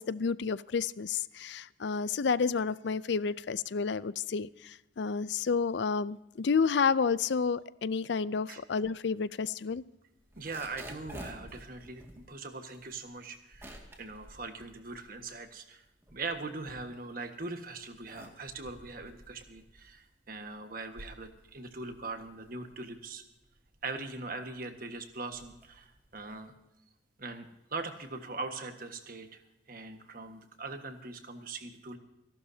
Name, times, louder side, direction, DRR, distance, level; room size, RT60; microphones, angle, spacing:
voice 1, 0.0-9.8, left 5 dB, 65° left, 18 dB, 0.5 m, -30 dB
sound 1, 10.2-15.5 15.9-17.3 17.8-26.5, right 1 dB, 15° right, 2.1 m, -51 dB
voice 2, 10.4-15.8 16.1-23.2 23.8-26.5 27.2-29.4 29.7-32.0, right 3 dB, 45° right, 6 dB, 1.5 m, -41 dB
29.5 x 12.0 x 2.8 m, 0.93 s
head